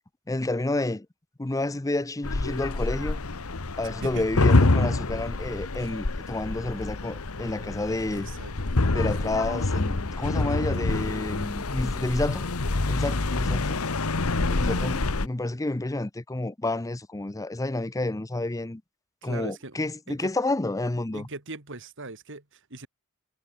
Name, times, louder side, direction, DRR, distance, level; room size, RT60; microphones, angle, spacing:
voice 1, 0.3-1.1 1.4-3.2 3.8-8.3 8.9-12.4 12.9-13.8 14.5-18.8 19.2-21.3, left 2 dB, 15° left, 0.6 m, -30 dB
sound 1, 2.2-15.3, left 2 dB, 80° left, 1.3 m, -26 dB
voice 2, 8.1-8.8 13.1-13.4 19.2-19.8 20.1-20.3 21.1-22.9, right 2 dB, 60° right, 3.6 m, -40 dB
head